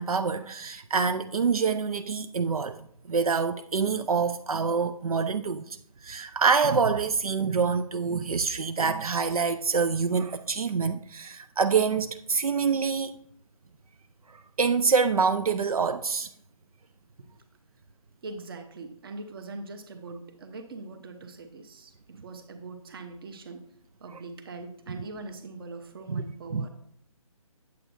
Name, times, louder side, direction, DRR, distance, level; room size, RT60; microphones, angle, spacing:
voice 1, 0.0-2.8 3.1-5.8 6.0-13.2 14.3-16.3 24.1-24.2 24.9-25.0 26.1-26.2 26.5-26.7, right 5 dB, 85° right, 0.4 m, -26 dB
voice 2, 18.2-23.7 24.0-26.7, right 3 dB, 40° right, 0.9 m, -42 dB
8.3 x 8.0 x 2.6 m
figure-of-eight pair, 150°, 18 cm